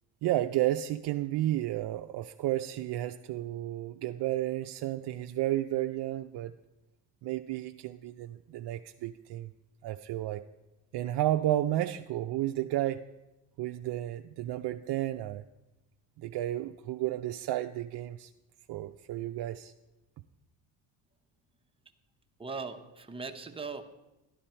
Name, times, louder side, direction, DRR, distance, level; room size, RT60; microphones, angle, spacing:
voice 1, 0.2-6.5 7.2-9.5 9.8-10.4 10.9-13.0 13.6-15.4 16.2-18.3 18.7-19.7, right 14 dB, 60° right, 0.5 m, -32 dB
voice 2, 22.4-23.8, right 4 dB, 10° right, 0.9 m, -39 dB
12.5 x 10.0 x 4.4 m
supercardioid pair, 85°, 46 cm